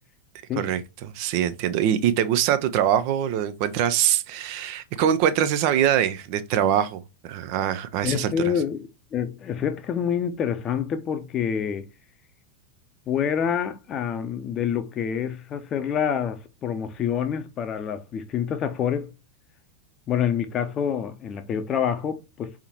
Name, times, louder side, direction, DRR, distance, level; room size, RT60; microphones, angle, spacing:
voice 1, 0.6-8.5, right 10 dB, 45° right, 0.5 m, -23 dB
voice 2, 8.0-11.9 13.1-19.1 20.1-22.5, left 8 dB, 30° left, 0.7 m, -27 dB
4.4 x 3.6 x 2.8 m
figure-of-eight pair, 90°, 0 cm